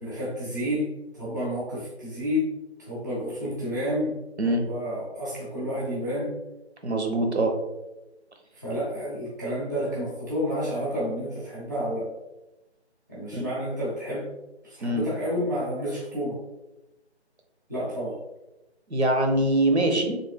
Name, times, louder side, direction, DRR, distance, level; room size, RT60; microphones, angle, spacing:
voice 1, 0.0-2.5 2.8-4.1 4.4-6.3 8.5-12.1 13.1-14.3 14.6-16.4 17.7-18.2, equal, 15° right, -8 dB, 0.7 m, -30 dB
voice 2, 6.8-7.5 13.3-13.4 14.8-15.0 18.9-20.2, right 1 dB, 75° right, 3 dB, 0.9 m, -23 dB
4.4 x 3.3 x 2.2 m, 1.0 s
figure-of-eight pair, 155°, 33 cm